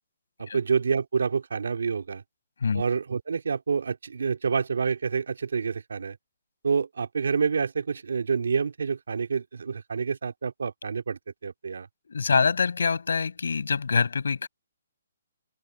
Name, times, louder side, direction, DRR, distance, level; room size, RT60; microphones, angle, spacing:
voice 1, 0.4-2.2 2.7-6.2 6.6-11.9, right 5 dB, 85° right, 2.3 m, -28 dB
voice 2, 12.1-14.5, left 5 dB, 85° left, 6.4 m, -25 dB
hypercardioid pair, 165°, 0 cm